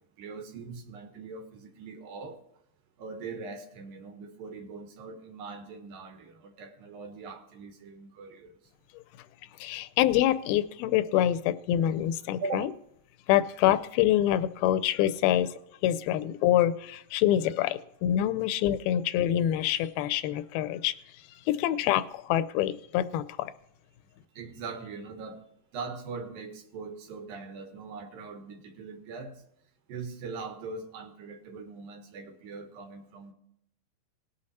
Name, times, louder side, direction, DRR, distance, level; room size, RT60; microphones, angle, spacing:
voice 1, 0.2-2.4 3.0-8.5 12.4-12.7 21.4-21.7 24.4-25.4 25.7-29.4 29.9-33.3, right 4 dB, 70° right, 2.9 m, -41 dB
voice 2, 9.6-12.7 13.3-15.5 15.8-20.9 21.5-23.5, left 12 dB, 85° left, 2.4 m, -26 dB
19.0 x 6.5 x 4.2 m
omnidirectional pair, 4.4 m